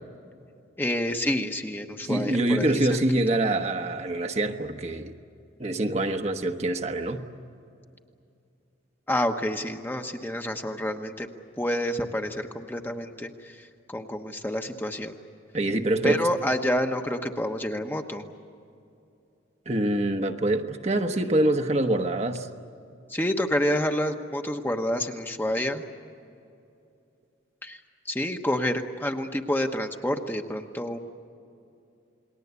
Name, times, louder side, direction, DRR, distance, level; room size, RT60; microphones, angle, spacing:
voice 1, 0.8-2.8 9.1-11.3 11.6-13.5 13.9-15.1 16.0-18.2 23.1-25.8 27.6-27.8 28.1-31.0, left 1 dB, 10° left, 4 dB, 1.1 m, -28 dB
voice 2, 2.1-5.2 5.6-7.2 15.5-16.3 19.7-22.5, right 1 dB, 35° right, 5 dB, 1.1 m, -25 dB
29.0 x 20.5 x 8.3 m, 2.6 s
head